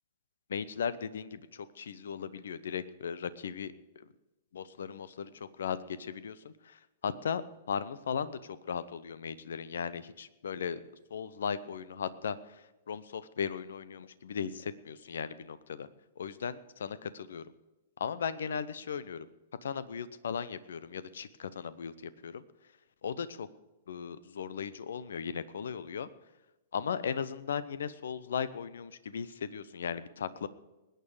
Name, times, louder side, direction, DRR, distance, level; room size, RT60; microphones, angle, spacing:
voice 1, 0.5-4.1 4.5-7.4 7.7-10.8 11.1-12.4 12.9-15.9 16.2-17.5 18.0-19.3 19.6-22.4 23.0-23.5 23.9-26.1 26.7-30.5, left 7 dB, 65° left, 16 dB, 0.8 m, -37 dB
20.5 x 9.1 x 5.0 m, 1.0 s
figure-of-eight pair, 110°, 0 cm